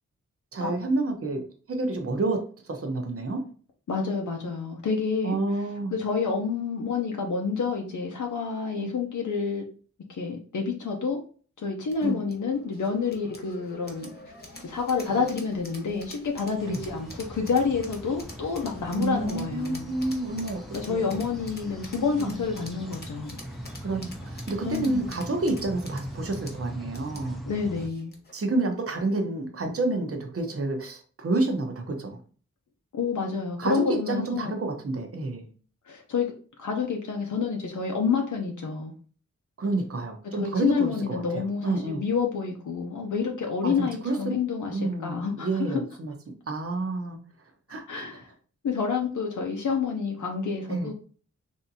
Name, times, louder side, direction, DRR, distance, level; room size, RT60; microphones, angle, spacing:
voice 1, 0.5-1.4 1.7-3.4 5.2-5.9 8.8-8.9 12.0-12.2 15.1-15.2 16.6-16.8 19.0-21.2 22.2-22.4 23.8-27.4 28.3-32.2 33.6-35.5 39.6-42.0 43.6-44.2 44.7-46.1 46.5-48.1 50.7-50.9, right 2 dB, 50° right, 4 dB, 0.8 m, -29 dB
voice 2, 3.9-5.4 5.9-9.6 10.1-11.2 11.6-14.1 14.6-19.9 20.7-23.4 24.6-25.1 27.5-28.1 32.9-34.6 35.9-36.3 36.6-38.9 40.4-45.5 47.9-48.3 48.6-50.9, left 5 dB, 80° left, 1 dB, 0.6 m, -28 dB
sound 1, 11.9-28.4, left 2 dB, 35° left, 1.1 m, -47 dB
sound 2, 16.6-27.9, right 1 dB, ahead, 0.6 m, -41 dB
3.4 x 2.7 x 2.7 m, 0.41 s
wide cardioid pair, 60°, 30 cm